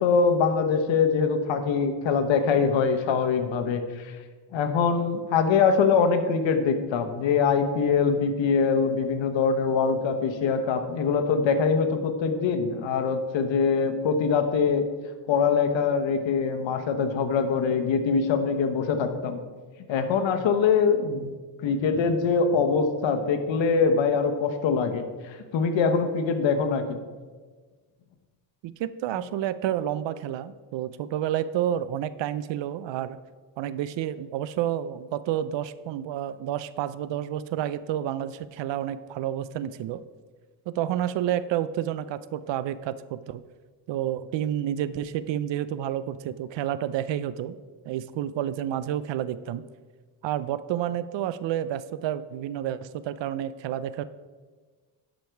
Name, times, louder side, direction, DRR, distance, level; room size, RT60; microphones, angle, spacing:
voice 1, 0.0-4.2 4.5-14.9 15.3-19.4 19.9-21.3 21.6-26.8, left 5 dB, 80° left, 7 dB, 1.0 m, -23 dB
voice 2, 28.6-33.2 33.6-40.0 40.7-43.4 43.9-47.5 47.9-49.6 50.2-54.0, right 11 dB, 75° right, 15 dB, 0.6 m, -30 dB
11.5 x 5.2 x 4.6 m, 1.4 s
cardioid pair, 95°, 44 cm